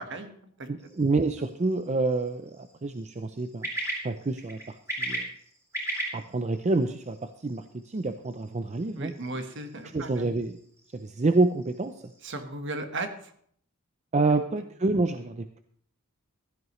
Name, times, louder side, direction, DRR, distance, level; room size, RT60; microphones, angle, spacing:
voice 1, 0.1-0.7 9.0-10.3 12.2-13.3 14.3-14.4, right 2 dB, 55° right, 7 dB, 1.4 m, -36 dB
voice 2, 0.7-3.7 4.0-5.3 6.1-9.1 9.9-10.6 10.9-12.0 14.1-15.6, right 3 dB, 30° right, 9 dB, 0.5 m, -28 dB
sound 1, 0.8-12.4, right 1 dB, 15° right, 3.7 m, -40 dB
15.5 x 12.5 x 3.1 m, 0.63 s
head